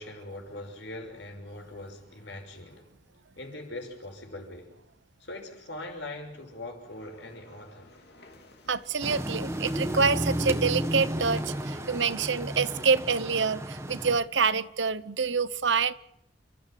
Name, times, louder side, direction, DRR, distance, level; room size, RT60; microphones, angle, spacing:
voice 1, 0.0-2.9 3.4-4.8 5.2-7.9, left 2 dB, 75° left, 6.1 m, -41 dB
sound 1, 6.9-12.4, left 2 dB, 60° left, 2.9 m, -55 dB
voice 2, 8.7-15.9, right 5 dB, 75° right, 0.9 m, -26 dB
sound 2, 9.0-14.2, right 1 dB, 15° right, 1.4 m, -32 dB
29.0 x 14.5 x 7.7 m
head